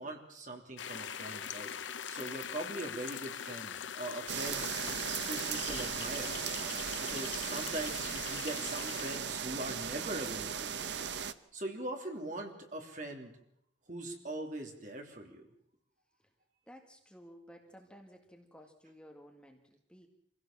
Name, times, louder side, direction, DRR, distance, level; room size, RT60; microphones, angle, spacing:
voice 1, 0.0-4.7 5.2-6.5 7.0-11.1 11.5-13.4 13.9-15.4, right 1 dB, 40° right, 3 dB, 3.2 m, -41 dB
sound 1, 0.8-9.2, left 8 dB, 80° left, 0.8 m, -42 dB
sound 2, 4.3-11.3, right 7 dB, 65° right, 0.9 m, -37 dB
voice 2, 16.7-20.1, equal, 5° left, 2 dB, 1.9 m, -55 dB
26.0 x 16.5 x 7.4 m, 0.75 s
head